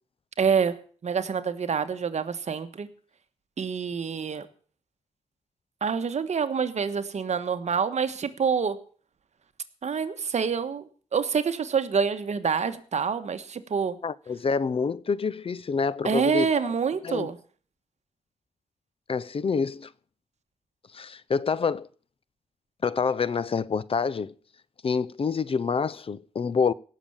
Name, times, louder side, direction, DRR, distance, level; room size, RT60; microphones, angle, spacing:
voice 1, 0.4-2.9 3.6-4.5 5.8-8.8 9.8-14.0 16.0-17.4, right 6 dB, 60° right, 1.4 m, -27 dB
voice 2, 14.0-16.7 17.0-17.3 19.1-19.9 20.9-21.9 22.8-24.3 24.8-26.7, left 5 dB, 45° left, 0.6 m, -27 dB
17.0 x 6.8 x 7.2 m
wide cardioid pair, 110°, 13 cm